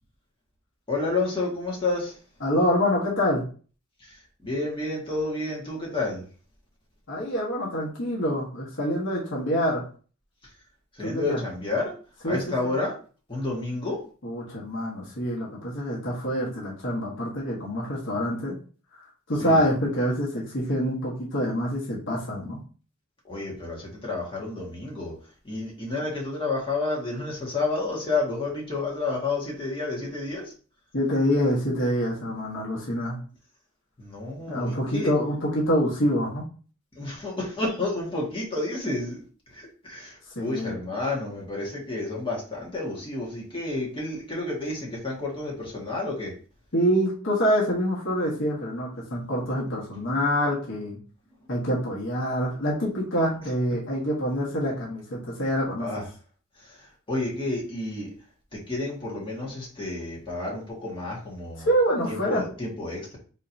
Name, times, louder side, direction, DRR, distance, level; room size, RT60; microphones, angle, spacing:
voice 1, 0.9-2.2 4.0-6.2 10.4-10.5 10.9-11.9 12.2-12.9 13.3-14.0 19.4-19.6 23.2-25.1 25.4-30.5 34.0-35.1 36.9-39.2 39.5-46.3 55.8-56.1 56.5-58.1 58.5-61.7 62.1-63.2, left 2 dB, 25° left, -3 dB, 1.7 m, -30 dB
voice 2, 2.4-3.4 7.1-9.8 11.0-11.4 12.2-12.4 12.6-12.7 14.2-18.5 19.3-22.6 30.9-33.2 34.5-36.4 40.3-40.8 46.7-51.0 51.5-55.9 61.6-62.4, equal, 60° left, -4 dB, 1.3 m, -26 dB
4.4 x 3.7 x 2.7 m, 0.39 s
head